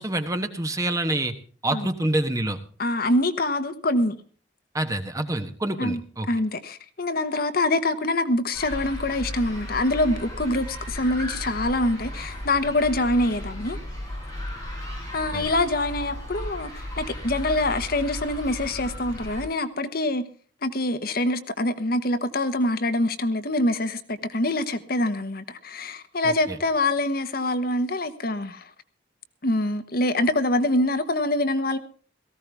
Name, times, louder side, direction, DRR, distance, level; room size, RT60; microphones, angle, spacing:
voice 1, 0.0-1.3 1.6-2.6 4.7-6.3 15.3-15.5 26.2-26.6, right 1 dB, 20° right, 1.2 m, -27 dB
voice 2, 2.8-4.2 5.8-6.0 6.3-13.8 15.1-20.3 20.6-28.7 29.4-31.8, left 1 dB, 55° left, 1.1 m, -25 dB
sound 1, 8.5-19.4, left 1 dB, 20° left, 7.9 m, -35 dB
18.0 x 15.0 x 3.5 m
head